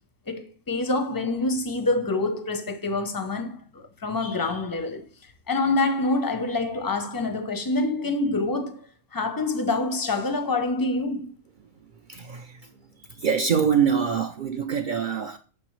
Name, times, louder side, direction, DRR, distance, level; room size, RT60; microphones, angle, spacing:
voice 1, 0.3-5.0 5.5-8.8 9.1-11.3, left 2 dB, 30° left, 0.4 m, -26 dB
voice 2, 12.1-12.6 13.1-15.4, right 7 dB, 75° right, 0.4 m, -24 dB
6.7 x 5.3 x 3.1 m
omnidirectional pair, 1.4 m